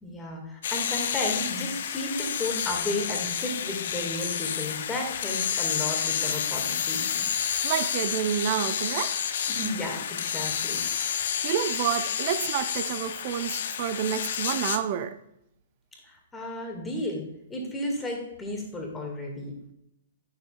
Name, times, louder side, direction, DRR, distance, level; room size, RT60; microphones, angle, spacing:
voice 1, 0.0-7.2 9.5-10.8 16.1-19.5, left 1 dB, 10° left, 0 dB, 1.9 m, -33 dB
sound 1, 0.6-14.8, left 8 dB, 55° left, 0.6 m, -30 dB
voice 2, 7.6-9.2 11.4-15.2, right 9 dB, 45° right, 11 dB, 0.6 m, -29 dB
9.1 x 7.3 x 2.4 m, 0.80 s
figure-of-eight pair, 115°, 0 cm